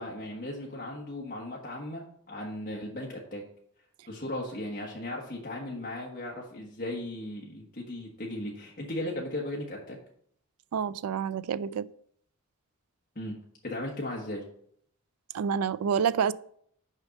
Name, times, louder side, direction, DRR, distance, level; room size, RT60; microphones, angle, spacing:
voice 1, 0.0-3.4 4.1-10.0 13.1-13.4 13.6-14.4, left 1 dB, 40° left, 1.3 m, -36 dB
voice 2, 10.7-11.9 15.3-16.3, right 7 dB, 85° right, 0.4 m, -28 dB
6.4 x 5.2 x 6.4 m
head